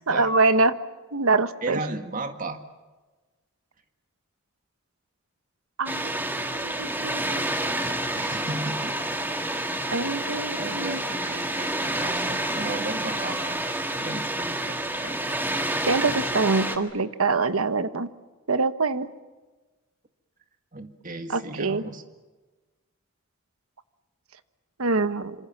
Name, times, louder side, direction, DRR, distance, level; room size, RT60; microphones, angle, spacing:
voice 1, 0.1-0.8 1.1-1.8 5.8-6.1 6.5-7.5 9.9-11.0 15.9-18.1 18.5-19.1 21.3-21.8 24.8-25.3, right 3 dB, 90° right, 12 dB, 1.2 m, -24 dB
voice 2, 1.6-2.6 8.1-9.1 10.5-15.2 20.7-22.0, right 2 dB, 40° right, 7 dB, 1.9 m, -35 dB
Water, 5.9-16.8, right 1 dB, 10° right, 1.7 m, -29 dB
26.5 x 26.0 x 7.3 m, 1.2 s
head